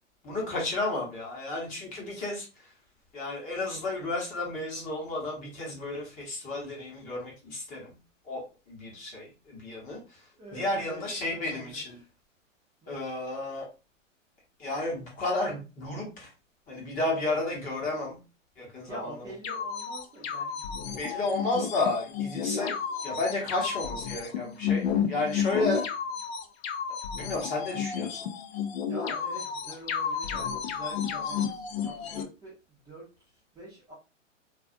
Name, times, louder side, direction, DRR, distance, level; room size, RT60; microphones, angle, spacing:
voice 1, 0.2-2.7 3.1-8.0 8.2-10.2 10.5-12.0 12.9-13.7 14.6-16.3 16.7-18.2 18.6-19.1 20.9-22.8 23.0-25.9 26.9-28.3, left 2 dB, 20° left, -2 dB, 1.0 m, -32 dB
voice 2, 10.4-12.0 12.8-13.0 18.8-21.4 28.9-33.9, right 1 dB, 10° right, -5 dB, 0.6 m, -45 dB
sound 1, 19.4-32.2, left 7 dB, 55° left, 0.5 m, -32 dB
2.6 x 2.4 x 2.4 m, 0.30 s
hypercardioid pair, 135°, 38 cm